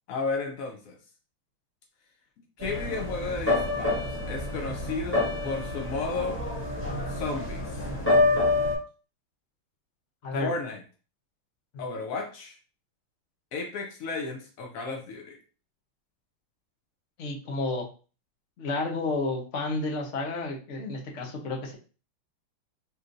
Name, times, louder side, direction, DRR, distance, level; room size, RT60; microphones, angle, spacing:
voice 1, 0.1-1.0 2.6-6.4 7.1-7.8 10.4-10.8 11.8-12.6 13.5-15.4, left 4 dB, 85° left, 3 dB, 0.7 m, -33 dB
sound 1, 2.6-8.8, left 2 dB, 5° left, 1.2 m, -27 dB
voice 2, 17.2-17.9 18.6-21.8, left 2 dB, 55° left, 1 dB, 0.8 m, -31 dB
4.5 x 3.1 x 2.6 m, 0.35 s
omnidirectional pair, 2.2 m